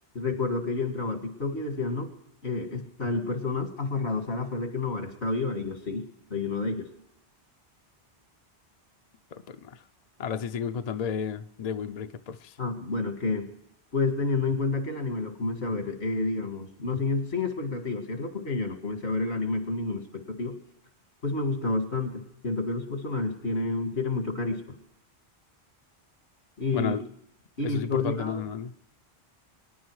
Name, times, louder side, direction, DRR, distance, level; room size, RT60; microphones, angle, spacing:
voice 1, 0.1-2.1 2.4-6.9 12.6-13.5 13.9-20.6 21.2-24.8 26.6-27.0 27.6-28.4, left 3 dB, 80° left, 6 dB, 2.2 m, -29 dB
voice 2, 9.3-9.8 10.2-12.6 26.7-27.0 27.6-28.7, left 7 dB, 45° left, 9 dB, 0.6 m, -32 dB
24.0 x 10.5 x 4.8 m, 0.82 s
omnidirectional pair, 1.1 m